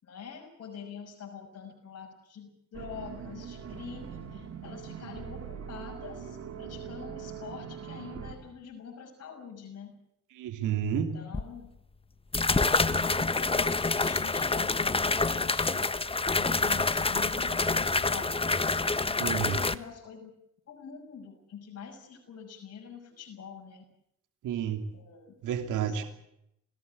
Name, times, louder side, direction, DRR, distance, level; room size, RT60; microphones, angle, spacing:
voice 1, 0.0-9.9 11.1-11.7 12.4-16.1 16.4-18.5 18.9-20.3 20.7-23.8 24.9-25.3 25.9-26.1, left 6 dB, 55° left, 6.3 m, -45 dB
sound 1, 2.7-8.4, right 7 dB, 55° right, 5.6 m, -42 dB
voice 2, 10.4-11.1 19.2-19.6 24.4-24.8 25.4-26.0, right 8 dB, 85° right, 3.0 m, -30 dB
sound 2, 11.3-11.4 12.3-19.7, left 3 dB, 20° left, 1.4 m, -27 dB
28.0 x 17.5 x 8.3 m
cardioid pair, 90°, 30 cm